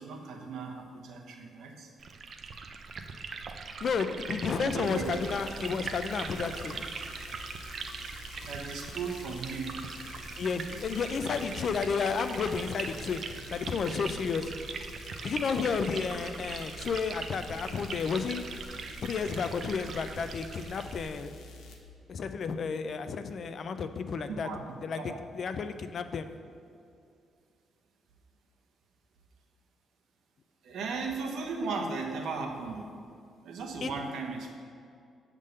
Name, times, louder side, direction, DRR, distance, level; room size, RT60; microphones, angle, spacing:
voice 1, 0.0-1.9 4.5-5.1 8.4-9.8 24.3-24.6 24.9-25.2 30.6-32.9 33.4-34.5, right 4 dB, 75° right, 2 dB, 1.0 m, -36 dB
Liquid, 2.0-21.1, right 4 dB, 45° right, 0.5 m, -41 dB
voice 2, 3.8-6.9 10.4-13.2 13.5-14.5 15.2-18.4 19.0-21.4 22.1-24.5 24.8-26.3 33.8-33.9, left 5 dB, 50° left, 9 dB, 0.4 m, -32 dB
sound 1, 4.8-21.8, left 3 dB, 85° left, 0.9 m, -48 dB
8.1 x 3.7 x 6.5 m, 2.4 s
cardioid pair, 130°, 0 cm